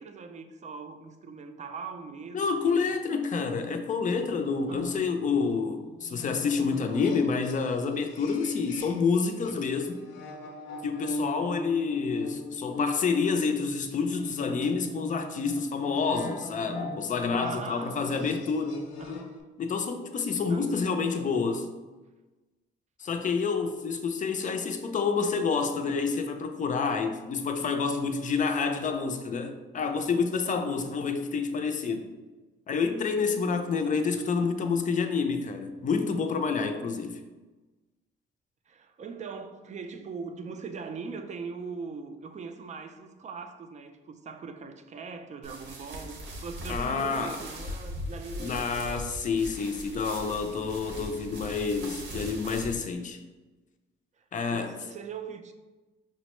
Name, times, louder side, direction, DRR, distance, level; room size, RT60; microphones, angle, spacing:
voice 1, 0.0-2.9 4.7-5.3 17.4-18.1 19.0-19.3 20.5-21.0 30.7-31.0 38.7-49.1 54.2-54.3 54.5-55.5, right 5 dB, 35° right, 0.4 m, -41 dB
voice 2, 2.3-10.0 10.8-18.8 19.6-21.7 23.0-32.1 32.7-37.2 46.7-47.4 48.4-53.2 54.3-54.7, left 5 dB, 40° left, 0.4 m, -28 dB
sound 1, 3.4-9.2 9.4-19.4, left 2 dB, 90° left, 0.6 m, -41 dB
sound 2, 45.4-52.8, equal, 65° right, 0.8 m, -40 dB
5.2 x 2.1 x 3.0 m
cardioid pair, 90°, 20 cm